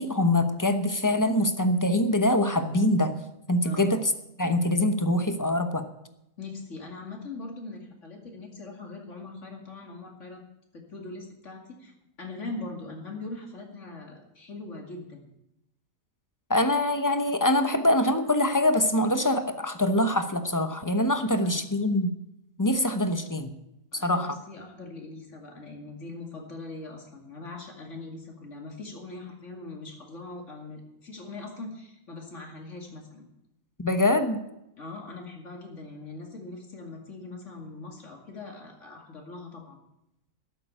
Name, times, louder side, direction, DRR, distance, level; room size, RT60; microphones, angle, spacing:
voice 1, 0.0-3.2 3.5-4.1 4.4-5.9 16.5-22.1 22.6-23.5 24.0-24.4 33.8-34.4, left 1 dB, 15° left, 9 dB, 0.8 m, -24 dB
voice 2, 6.4-10.4 10.7-15.2 21.3-21.7 23.9-33.3 34.8-39.8, left 3 dB, 60° left, 2 dB, 2.6 m, -41 dB
13.0 x 8.5 x 8.9 m, 0.86 s
omnidirectional pair, 1.4 m